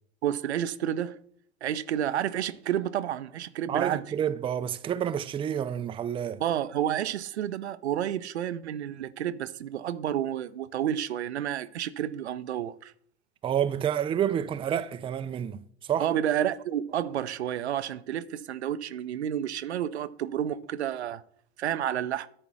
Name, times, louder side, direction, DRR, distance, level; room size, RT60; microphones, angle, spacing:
voice 1, 0.2-1.2 1.6-4.0 6.4-12.9 16.0-21.2 21.6-22.3, right 10 dB, 90° right, 0.5 m, -30 dB
voice 2, 3.7-6.4 13.4-15.6 15.9-16.1, right 9 dB, 15° right, 0.4 m, -29 dB
9.8 x 4.4 x 6.0 m
hypercardioid pair, 90°, 32 cm